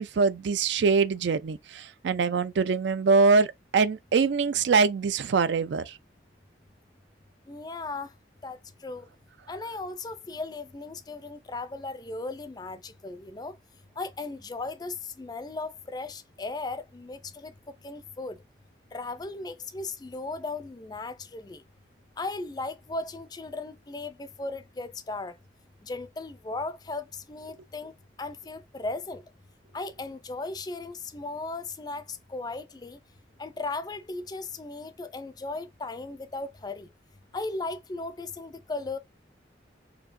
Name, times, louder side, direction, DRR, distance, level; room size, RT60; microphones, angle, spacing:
voice 1, 0.0-3.5 3.7-5.9, right 4 dB, 75° right, 0.4 m, -23 dB
voice 2, 7.5-8.1 8.4-9.1 9.5-13.6 14.0-18.4 18.9-21.6 22.2-25.4 25.8-29.2 29.7-33.0 33.4-36.9 37.3-39.0, left 3 dB, 20° left, 0.4 m, -36 dB
4.4 x 2.8 x 2.5 m
head